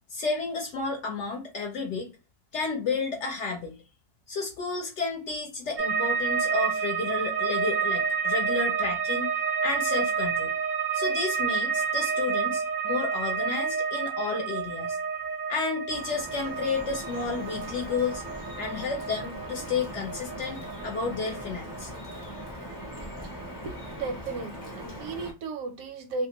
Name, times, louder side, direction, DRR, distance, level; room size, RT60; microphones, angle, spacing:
voice 1, 0.1-2.1 2.5-3.8 4.3-9.3 9.6-10.5 10.9-15.0 15.5-18.2 18.6-21.9, left 4 dB, 65° left, 0.9 m, -31 dB
sound 1, 5.8-22.9 23.2-23.9, right 6 dB, 55° right, 0.6 m, -30 dB
Drip, 15.9-25.3, equal, 20° left, 0.6 m, -40 dB
voice 2, 23.6-26.3, right 3 dB, 85° right, 1.0 m, -35 dB
2.6 x 2.4 x 2.8 m
omnidirectional pair, 1.4 m